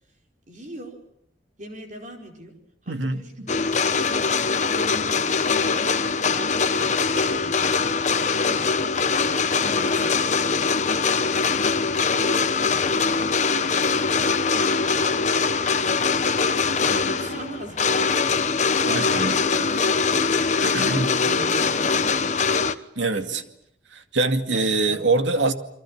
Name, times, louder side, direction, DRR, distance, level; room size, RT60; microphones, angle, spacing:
voice 1, 0.5-1.0 1.6-2.6 2.8-5.5 6.2-20.8 21.2-23.4 24.5-25.2, right 1 dB, 40° right, 2 dB, 4.8 m, -42 dB
voice 2, 2.9-3.5 9.6-9.9 16.9-17.1 18.8-19.4 20.6-21.2 23.0-23.4 23.9-25.5, right 3 dB, 90° right, 7 dB, 2.3 m, -25 dB
sound 1, 3.5-22.7, left 5 dB, 40° left, 1.0 m, -22 dB
29.0 x 24.0 x 7.4 m, 0.72 s
head